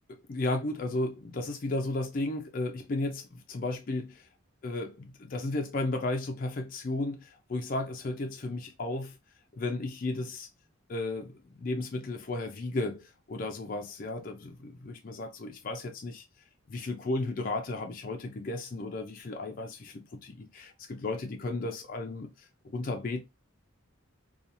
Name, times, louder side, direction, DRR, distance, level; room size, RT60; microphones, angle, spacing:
voice 1, 0.3-4.3 4.6-9.2 9.5-10.5 10.9-16.2 16.7-23.2, left 2 dB, 40° left, 0.4 m, -34 dB
2.8 x 2.3 x 2.5 m
head